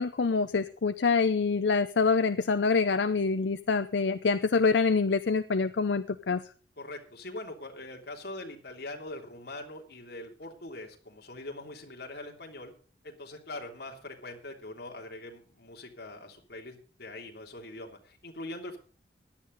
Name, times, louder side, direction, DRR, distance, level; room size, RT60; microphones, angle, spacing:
voice 1, 0.0-6.4, left 4 dB, 85° left, 12 dB, 0.6 m, -26 dB
voice 2, 6.8-12.7 13.0-18.8, left 2 dB, 65° left, 1 dB, 3.1 m, -42 dB
16.5 x 11.5 x 4.0 m, 0.39 s
head